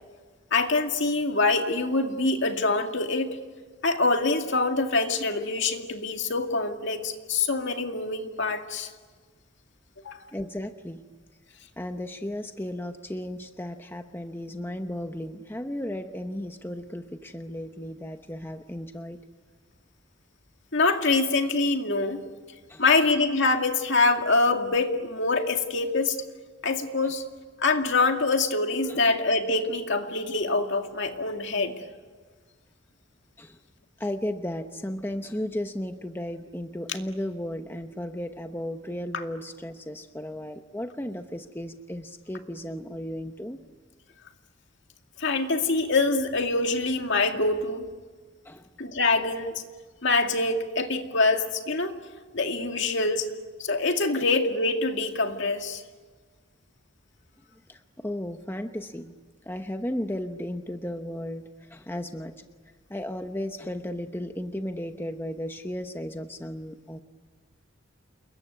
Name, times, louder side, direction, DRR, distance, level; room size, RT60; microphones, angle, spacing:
voice 1, 0.5-3.4 3.8-8.9 10.0-10.2 20.7-22.2 22.8-26.2 26.6-27.2 27.6-31.8 45.2-47.8 48.8-49.6 50.0-51.9 52.3-53.3 53.6-55.8, left 3 dB, 60° left, 5 dB, 2.3 m, -25 dB
voice 2, 10.3-11.0 11.8-19.2 22.7-22.8 27.0-27.1 28.9-29.0 33.4-33.6 34.0-43.6 48.4-48.7 57.7-59.1 59.4-62.4 62.9-67.0, left 1 dB, 10° left, 6 dB, 0.9 m, -35 dB
29.0 x 21.5 x 9.5 m, 1.4 s
head